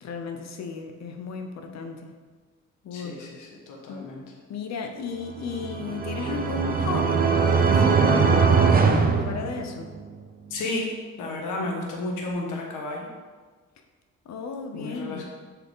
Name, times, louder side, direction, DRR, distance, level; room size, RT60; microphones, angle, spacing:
voice 1, 0.0-2.1 2.8-3.2 3.9-4.1 4.5-8.6 9.2-9.9 14.3-15.2, left 5 dB, 60° left, 4 dB, 0.8 m, -35 dB
voice 2, 2.9-4.2 10.5-10.9 11.2-13.1 14.7-15.2, left 2 dB, 90° left, 0 dB, 1.4 m, -32 dB
sound 1, 5.5-10.0, right 5 dB, 30° right, 0.7 m, -21 dB
6.7 x 4.8 x 3.7 m, 1.4 s
cardioid pair, 90°, 30 cm